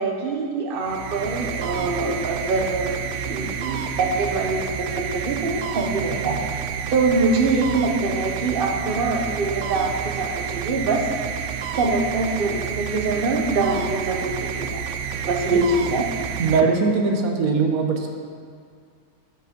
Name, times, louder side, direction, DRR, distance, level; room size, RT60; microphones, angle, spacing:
voice 1, 0.0-3.0 3.3-6.4 6.9-11.1 11.7-14.8 15.2-16.0, right 3 dB, 40° right, 1 dB, 1.0 m, -24 dB
sound 1, 0.7-17.3, right 7 dB, 80° right, 0.6 m, -30 dB
voice 2, 16.4-18.1, right 4 dB, 60° right, 3 dB, 1.4 m, -20 dB
12.0 x 5.1 x 5.2 m, 2.2 s
omnidirectional pair, 1.8 m